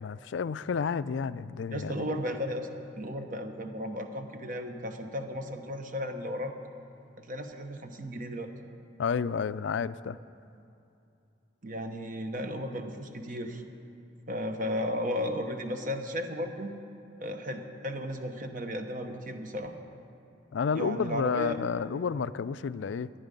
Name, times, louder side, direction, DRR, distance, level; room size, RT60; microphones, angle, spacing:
voice 1, 0.0-2.1 9.0-10.2 20.5-23.1, left 6 dB, 65° left, 16 dB, 0.4 m, -31 dB
voice 2, 1.7-2.7 3.0-6.5 7.2-8.5 11.6-13.6 14.3-16.7 17.2-19.8 20.7-21.6, equal, 45° right, 6 dB, 1.1 m, -34 dB
18.5 x 11.5 x 5.3 m, 2.7 s
head